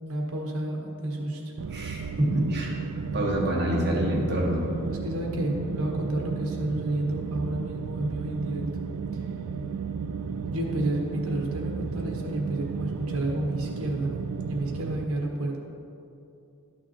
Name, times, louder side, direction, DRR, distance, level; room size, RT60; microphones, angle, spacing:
voice 1, 0.0-1.5 4.8-8.6 10.5-14.1 14.4-15.6, right 1 dB, 70° right, 0 dB, 1.4 m, -30 dB
sound 1, 1.6-15.0, right 5 dB, 90° right, 0.4 m, -33 dB
voice 2, 1.7-2.8 3.1-4.7, equal, 45° right, -3 dB, 1.6 m, -26 dB
11.5 x 6.1 x 4.3 m, 2.7 s
head